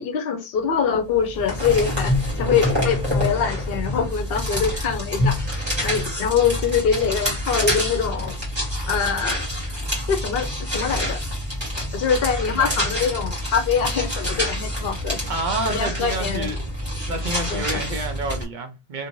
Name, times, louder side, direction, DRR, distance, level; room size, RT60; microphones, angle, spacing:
voice 1, 0.0-8.4 8.9-9.5 10.1-11.2 11.9-15.2 15.6-16.5 17.5-17.8, left 6 dB, 70° left, 0.8 m, -24 dB
sound 1, 1.2-18.4, left 1 dB, 25° right, 1.6 m, -26 dB
voice 2, 15.3-16.6 17.1-19.1, right 2 dB, 55° right, 0.7 m, -29 dB
2.7 x 2.5 x 2.9 m
omnidirectional pair, 1.0 m